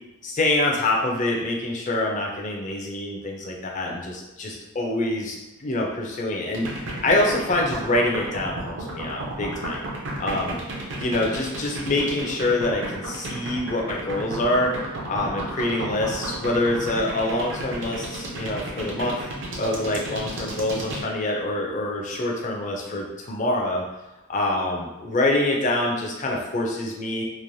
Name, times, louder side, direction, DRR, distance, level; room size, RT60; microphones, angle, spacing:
voice 1, 0.2-9.8 10.2-10.6 10.9-14.7 15.1-19.3 19.6-23.8 24.3-27.2, left 2 dB, 35° left, -1 dB, 0.4 m, -25 dB
sound 1, 6.5-21.0, right 2 dB, 55° right, 0.5 m, -33 dB
3.0 x 2.0 x 2.6 m, 1.0 s
head